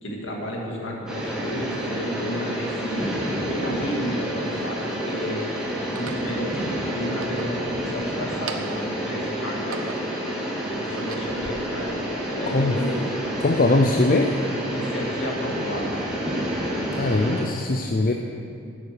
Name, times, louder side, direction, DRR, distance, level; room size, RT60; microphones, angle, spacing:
voice 1, 0.0-5.4 5.8-9.8 10.7-12.1 12.3-13.1 14.7-16.0, equal, 65° left, -1 dB, 2.2 m, -32 dB
sound 1, 1.1-17.4, equal, 5° right, 2.0 m, -29 dB
sound 2, 3.3-3.4 4.2-5.0 5.8-6.3 7.0-8.0 8.3-8.9 9.4-10.2 10.7-11.5, right 5 dB, 85° right, 0.8 m, -39 dB
voice 2, 13.4-14.4 17.0-18.1, left 2 dB, 40° left, 3 dB, 0.5 m, -21 dB
14.0 x 7.2 x 6.8 m, 2.5 s
head